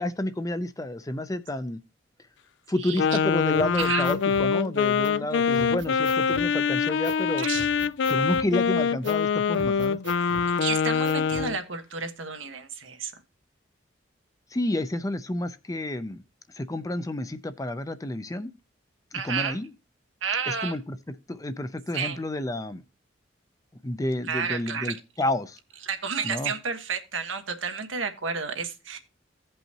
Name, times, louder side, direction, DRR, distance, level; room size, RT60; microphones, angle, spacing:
voice 1, 0.0-1.8 2.7-7.5 8.1-10.0 14.5-16.2 16.5-18.5 19.1-19.7 20.5-21.0 21.3-22.8 23.8-25.6 26.2-26.5, left 1 dB, 20° left, 0.5 m, -30 dB
Wind instrument woodwind instrument, 3.0-11.6, left 6 dB, 70° left, 0.4 m, -24 dB
sound 1, 3.5-4.5 5.0-5.1 5.5-6.5 7.0-7.2 7.5-8.5 9.0-9.2 9.5-10.5 11.0-11.5, right 2 dB, 70° right, 1.1 m, -41 dB
voice 2, 10.6-13.1 19.1-19.6 20.2-20.7 21.9-22.2 24.3-24.9 25.9-29.0, right 6 dB, 90° right, 1.4 m, -31 dB
16.0 x 5.4 x 2.9 m
head